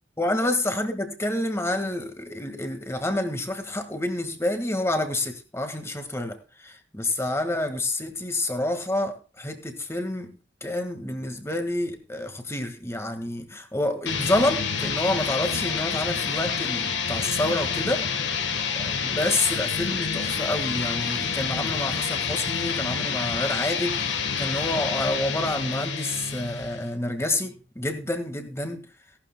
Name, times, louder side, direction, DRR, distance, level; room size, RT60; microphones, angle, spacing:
voice 1, 0.2-18.1 18.8-28.9, left 1 dB, 15° left, 1.7 m, -28 dB
sound 1, 14.1-26.9, left 6 dB, 70° left, 1.3 m, -28 dB
17.5 x 12.0 x 2.2 m
head